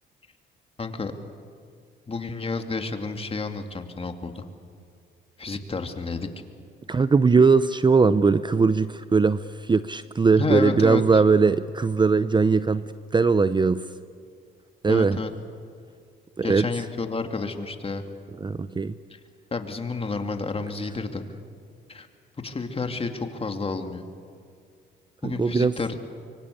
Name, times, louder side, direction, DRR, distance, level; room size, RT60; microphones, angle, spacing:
voice 1, 0.8-1.1 2.1-4.4 5.4-6.3 10.3-11.2 14.9-15.3 16.4-18.0 19.1-19.2 19.5-21.2 21.9-22.1 22.4-24.1 25.2-25.9, left 3 dB, 30° left, 6 dB, 2.4 m, -30 dB
voice 2, 6.9-12.8 13.1-13.8 14.8-15.2 16.4-16.7 18.4-18.9 25.2-25.7, right 4 dB, 25° right, 14 dB, 0.7 m, -20 dB
25.0 x 24.0 x 8.4 m, 2.2 s
cardioid pair, 90°, 20 cm